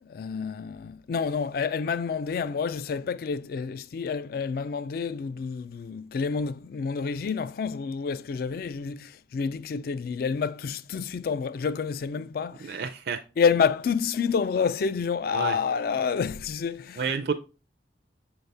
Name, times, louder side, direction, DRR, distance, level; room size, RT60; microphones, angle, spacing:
voice 1, 0.0-12.8 13.4-17.1, left 6 dB, 55° left, 0.3 m, -28 dB
voice 2, 12.7-13.2 15.3-15.6 17.0-17.3, right 5 dB, 60° right, 0.4 m, -29 dB
7.1 x 4.0 x 3.3 m
head